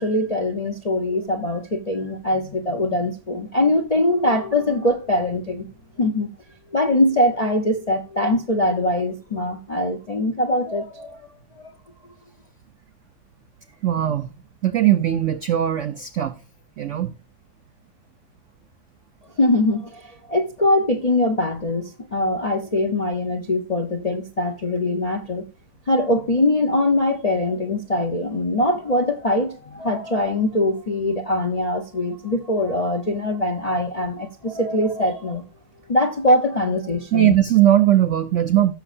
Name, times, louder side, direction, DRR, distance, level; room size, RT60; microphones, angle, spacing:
voice 1, 0.0-5.7 6.0-6.3 6.7-11.2 19.4-25.4 25.9-35.4 35.9-37.4, left 1 dB, 45° left, 0.5 m, -22 dB
voice 2, 13.8-14.3 14.6-16.3 16.8-17.2 37.1-38.7, right 12 dB, 75° right, 0.6 m, -19 dB
15.0 x 6.5 x 2.5 m
omnidirectional pair, 2.0 m